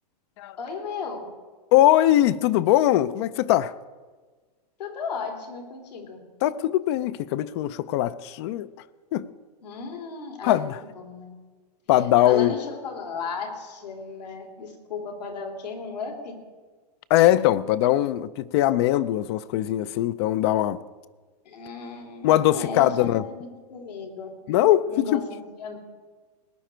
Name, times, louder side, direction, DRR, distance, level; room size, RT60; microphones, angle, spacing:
voice 1, 0.6-1.3 4.8-6.2 9.6-11.3 12.2-16.3 21.4-24.3 24.9-25.8, left 5 dB, 85° left, 3.4 m, -35 dB
voice 2, 1.7-3.7 6.4-8.7 9.1-9.3 10.4-10.8 11.9-12.5 17.1-20.8 22.2-23.2 24.5-25.2, left 13 dB, 40° left, 0.5 m, -21 dB
19.0 x 10.0 x 4.5 m
hypercardioid pair, 140°, 21 cm